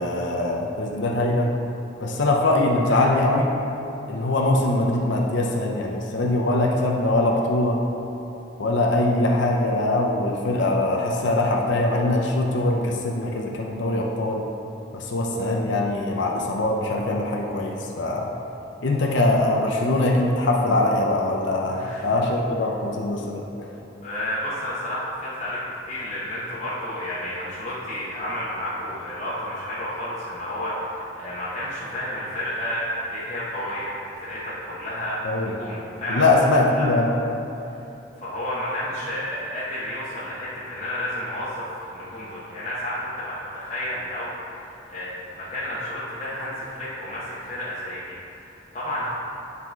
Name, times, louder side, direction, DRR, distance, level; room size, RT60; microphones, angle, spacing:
voice 1, 0.0-1.5 2.0-3.5 4.1-7.8 8.6-14.4 14.9-18.3 18.8-23.5 35.2-35.5 36.1-37.1, left 2 dB, 60° left, 0 dB, 0.6 m, -22 dB
voice 2, 21.7-22.1 24.0-36.4 36.8-37.1 37.7-37.9 38.2-49.1, left 1 dB, 30° left, -10 dB, 1.1 m, -31 dB
9.3 x 4.2 x 4.6 m, 2.9 s
head